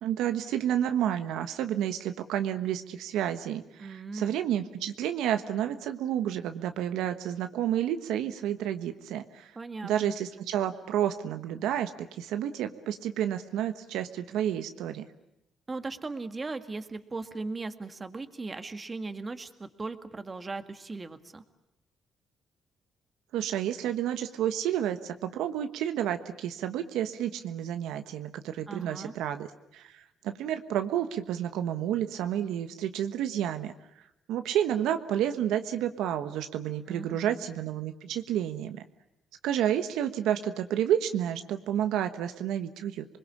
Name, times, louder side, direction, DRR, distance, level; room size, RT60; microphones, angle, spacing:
voice 1, 0.0-9.5 9.8-15.1 23.3-33.7 34.3-38.8 39.4-43.0, right 10 dB, 90° right, 8 dB, 1.3 m, -30 dB
voice 2, 3.8-4.4 9.6-10.1 15.7-21.4 28.7-29.1 36.9-37.4, right 3 dB, 25° right, 9 dB, 1.9 m, -38 dB
27.5 x 21.0 x 8.5 m, 0.87 s
cardioid pair, 90°, 0 cm